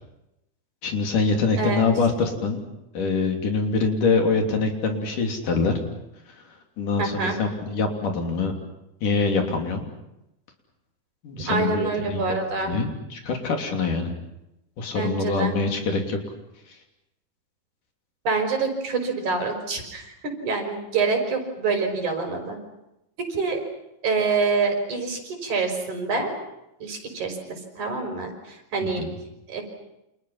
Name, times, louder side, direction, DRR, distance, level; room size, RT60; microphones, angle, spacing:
voice 1, 0.8-2.6 2.9-5.7 6.3-6.4 6.8-8.6 9.0-9.9 11.2-12.4 12.6-14.1 14.8-16.2 28.8-29.2, left 4 dB, 70° left, 3 dB, 4.7 m, -24 dB
voice 2, 1.6-1.9 7.0-7.4 11.4-12.8 15.0-15.5 18.3-20.1 20.4-22.6 23.2-23.6 24.0-26.3 26.8-29.0 29.5-29.6, right 4 dB, 60° right, 4 dB, 6.9 m, -26 dB
30.0 x 27.5 x 5.9 m, 0.87 s
omnidirectional pair, 3.8 m